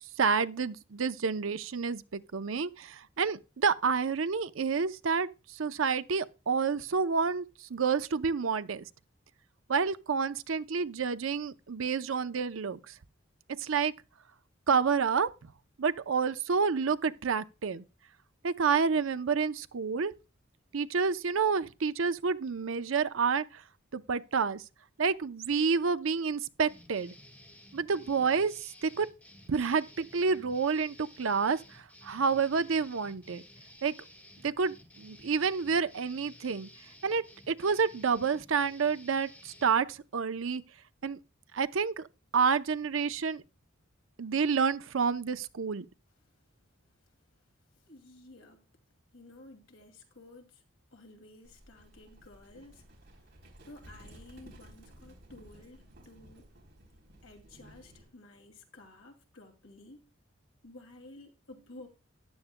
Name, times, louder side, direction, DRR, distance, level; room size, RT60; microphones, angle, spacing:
voice 1, 0.2-8.9 9.7-12.9 13.5-13.9 14.7-15.5 15.8-17.8 18.4-20.1 20.7-23.6 23.9-24.6 25.0-27.1 27.7-29.1 29.5-33.4 33.8-33.9 34.4-36.7 37.0-40.6 41.0-41.2 41.5-42.1 42.3-43.4 44.2-45.9, right 5 dB, 70° right, 0.6 m, -29 dB
sound 1, 26.7-39.8, left 1 dB, 5° left, 1.5 m, -55 dB
voice 2, 47.7-48.7 49.1-50.6 50.9-53.2 53.7-56.5 57.2-60.1 60.6-61.9, left 2 dB, 80° left, 2.5 m, -53 dB
Livestock farm animals working animals, 51.4-58.1, right 1 dB, 55° right, 3.5 m, -55 dB
14.5 x 11.0 x 2.2 m
head